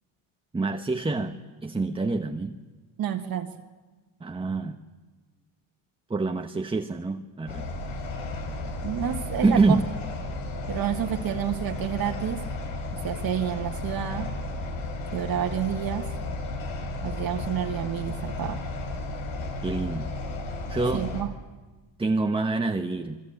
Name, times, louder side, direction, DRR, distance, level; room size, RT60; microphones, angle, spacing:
voice 1, 0.5-2.5 4.2-4.8 6.1-7.7 9.4-9.8 19.6-20.1 20.7-21.1 22.0-23.2, right 3 dB, 10° right, 5 dB, 1.1 m, -26 dB
voice 2, 3.0-3.5 8.8-9.8 10.7-12.4 12.9-14.3 15.1-16.1 17.0-18.6 20.9-21.3, right 10 dB, 50° right, 4 dB, 1.7 m, -29 dB
sound 1, 7.5-21.2, left 2 dB, 80° left, 5.9 m, -33 dB
28.0 x 23.5 x 8.7 m, 1.3 s
cardioid pair, 135°, 46 cm